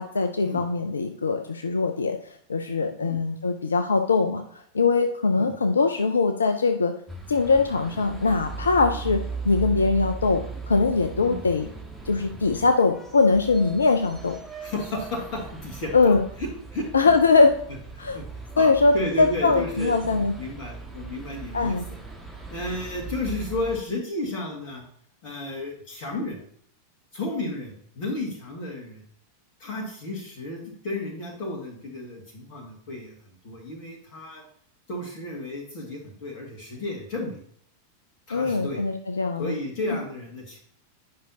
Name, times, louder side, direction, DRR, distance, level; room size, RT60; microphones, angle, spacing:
voice 1, 0.0-6.9 7.3-11.7 12.1-14.4 15.9-16.2 16.9-17.5 18.0-18.2 18.6-20.3 21.5-21.9 38.3-39.5, left 4 dB, 75° left, 6 dB, 0.5 m, -22 dB
sound 1, 7.1-23.8, right 4 dB, 5° right, 1.6 m, -38 dB
voice 2, 14.6-16.9 18.0-18.3 18.5-22.0 22.5-24.8 25.2-26.4 27.1-29.0 29.6-33.1 33.4-34.4 34.9-37.4 38.3-38.8 39.4-40.6, left 2 dB, 45° left, -2 dB, 1.8 m, -33 dB
9.3 x 5.6 x 2.8 m, 0.65 s
figure-of-eight pair, 90°, 0 cm